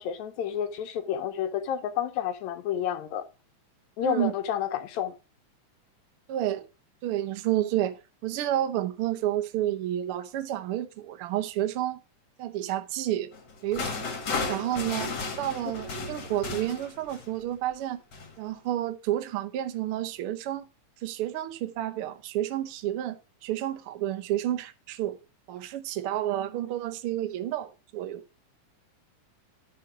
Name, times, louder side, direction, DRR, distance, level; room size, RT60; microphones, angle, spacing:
voice 1, 0.0-3.3 4.0-5.2, left 9 dB, 75° left, 1.8 m, -30 dB
voice 2, 6.3-6.6 7.0-12.0 12.4-13.3 13.6-14.1 14.5-15.1 15.4-18.0 18.4-20.6 21.0-23.2 23.4-25.1 25.5-28.2, right 13 dB, 85° right, 1.2 m, -30 dB
sound 1, 13.3-17.4 18.1-18.3, left 4 dB, 45° left, 1.5 m, -34 dB
11.0 x 5.8 x 4.9 m
omnidirectional pair, 3.8 m